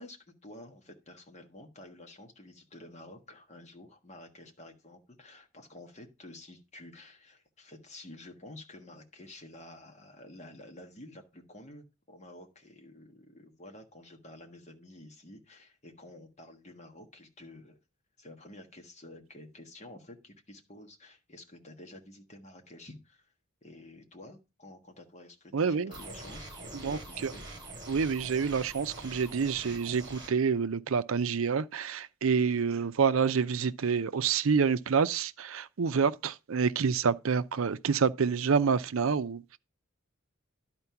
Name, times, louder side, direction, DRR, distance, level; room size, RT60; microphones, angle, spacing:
voice 1, 0.0-17.8 18.2-23.3 23.6-27.5, left 1 dB, 35° left, 1.5 m, -50 dB
voice 2, 25.5-25.9 26.8-27.3 27.9-39.6, right 6 dB, 70° right, 0.5 m, -28 dB
sound 1, 25.9-30.3, right 2 dB, 20° right, 2.7 m, -45 dB
11.0 x 4.4 x 5.7 m
head